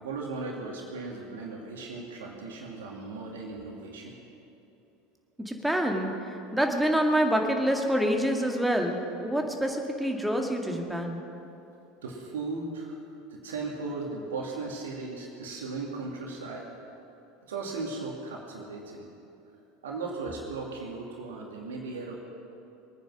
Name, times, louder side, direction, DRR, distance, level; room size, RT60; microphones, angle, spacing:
voice 1, 0.0-4.2 12.0-13.0 13.3-16.7 17.5-19.1 19.8-22.2, right 3 dB, 70° right, -1 dB, 2.4 m, -37 dB
voice 2, 5.4-6.1 6.5-11.2, equal, 5° right, 2 dB, 2.0 m, -26 dB
23.0 x 9.5 x 6.2 m, 2.8 s
figure-of-eight pair, 75°, 0 cm